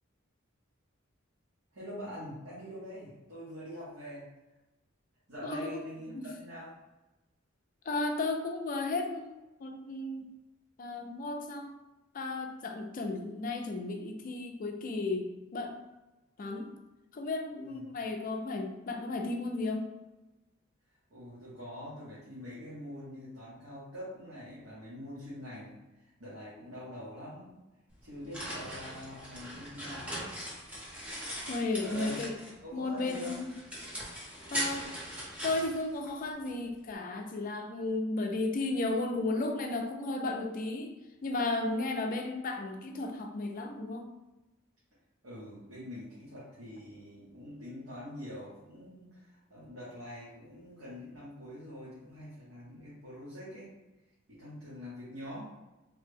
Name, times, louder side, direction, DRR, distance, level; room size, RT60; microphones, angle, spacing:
voice 1, 1.7-4.3 5.3-6.8 17.6-18.0 21.1-27.6 28.0-30.1 31.8-32.2 32.6-33.4 45.2-53.7 54.3-55.5, equal, 75° right, -10 dB, 1.1 m, -44 dB
voice 2, 5.4-6.3 7.9-10.3 10.8-11.7 12.1-15.8 16.4-16.7 17.1-19.9 31.5-32.3 32.7-33.5 34.5-34.9 35.4-40.9 41.2-44.1, left 2 dB, 40° left, 4 dB, 0.4 m, -34 dB
sound 1, 27.9-32.6 33.0-36.5, equal, 5° right, 0.7 m, -40 dB
3.3 x 2.1 x 3.3 m, 1.0 s
head